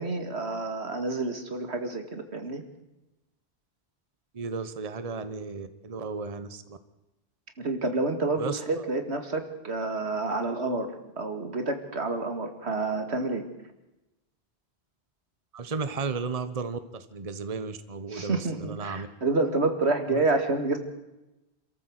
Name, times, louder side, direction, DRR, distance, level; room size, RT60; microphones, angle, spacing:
voice 1, 0.0-2.6 7.6-10.9 11.2-13.4 18.1-20.8, right 3 dB, 90° right, 6 dB, 2.5 m, -28 dB
voice 2, 4.3-6.8 8.4-8.9 15.5-19.1 20.1-20.2, right 4 dB, 35° right, 11 dB, 1.1 m, -34 dB
26.5 x 13.5 x 8.0 m, 1.0 s
omnidirectional pair, 1.1 m